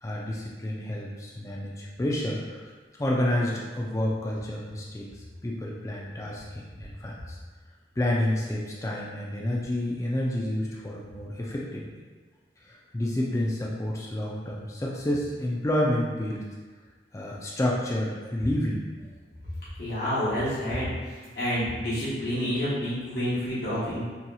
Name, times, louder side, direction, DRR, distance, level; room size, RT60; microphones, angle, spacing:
voice 1, 0.0-2.6 3.0-5.1 5.4-7.4 8.0-11.9 12.7-16.4 17.1-18.8, left 1 dB, 15° left, -3 dB, 0.3 m, -29 dB
voice 2, 19.8-24.1, equal, 60° left, -11 dB, 1.0 m, -29 dB
2.8 x 2.7 x 2.3 m, 1.4 s
head